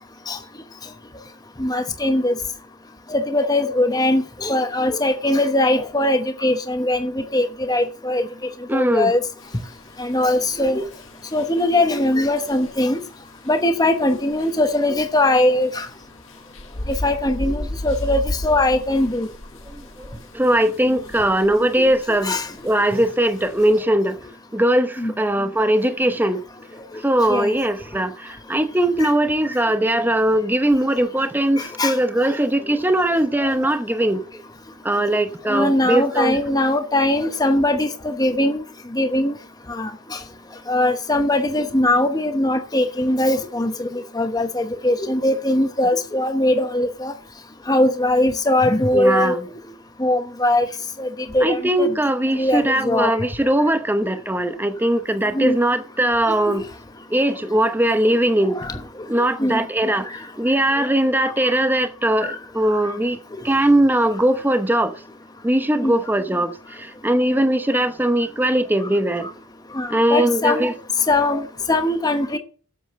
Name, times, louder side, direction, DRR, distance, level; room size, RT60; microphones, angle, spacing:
voice 1, 1.6-2.4 3.1-8.2 8.7-9.2 10.0-10.8 11.3-13.0 13.5-15.9 16.9-19.3 21.6-21.9 22.2-22.5 25.0-25.1 27.3-27.5 29.0-29.1 31.6-32.0 33.4-33.5 35.5-38.6 38.9-39.4 39.7-40.2 40.7-47.1 47.7-49.4 50.0-50.7 51.0-51.9 52.3-53.3 55.3-55.6 56.5-56.6 58.5-58.8 59.4-59.7 65.8-65.9 69.2-69.3 69.7-70.7 71.1-72.4, left 1 dB, 20° left, 1.0 m, -21 dB
voice 2, 8.7-9.1 19.7-22.4 22.6-24.2 24.5-26.4 27.0-34.2 34.8-36.4 48.9-49.4 51.4-56.6 57.1-60.1 60.4-63.2 63.4-65.0 65.4-69.3 69.9-70.7, right 1 dB, 10° right, 0.7 m, -20 dB
sound 1, 9.4-23.8, left 1 dB, 60° left, 1.6 m, -36 dB
8.1 x 7.2 x 7.4 m
head